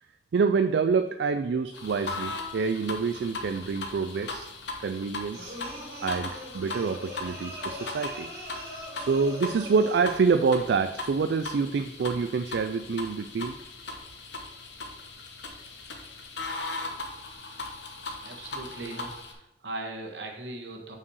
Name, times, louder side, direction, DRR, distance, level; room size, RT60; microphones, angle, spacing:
voice 1, 0.3-4.5 4.8-5.6 6.0-8.3 8.6-13.6, right 5 dB, 70° right, 9 dB, 0.3 m, -27 dB
sound 1, 1.7-19.3, left 3 dB, 75° left, 1.1 m, -39 dB
sound 2, 5.3-10.2, equal, 50° right, 2.3 m, -41 dB
voice 2, 18.2-21.0, right 2 dB, 85° right, 2 dB, 1.4 m, -39 dB
5.7 x 4.8 x 6.3 m, 0.91 s
head